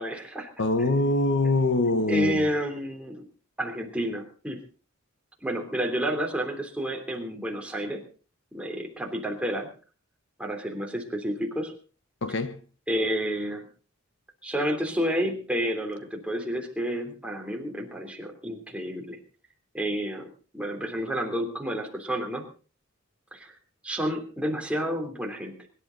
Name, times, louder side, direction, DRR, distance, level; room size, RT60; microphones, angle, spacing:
voice 1, 0.0-0.5 0.8-0.9 2.1-3.2 3.6-4.6 5.4-8.0 8.5-9.7 10.4-11.7 12.9-13.7 14.4-19.2 19.7-20.2 20.5-22.5 23.3-23.5 23.8-25.7, equal, 5° right, 3.2 m, -30 dB
voice 2, 0.6-2.5 12.2-12.6, left 2 dB, 65° left, 1.1 m, -24 dB
24.5 x 11.5 x 4.0 m
head